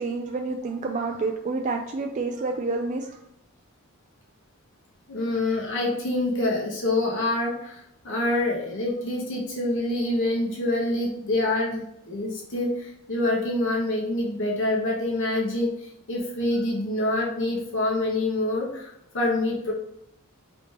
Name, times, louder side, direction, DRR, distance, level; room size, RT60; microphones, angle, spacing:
voice 1, 0.0-3.2, right 3 dB, 35° right, 3 dB, 0.3 m, -29 dB
voice 2, 5.1-19.7, left 2 dB, 60° left, -2 dB, 1.1 m, -26 dB
5.0 x 3.4 x 2.9 m, 0.79 s
head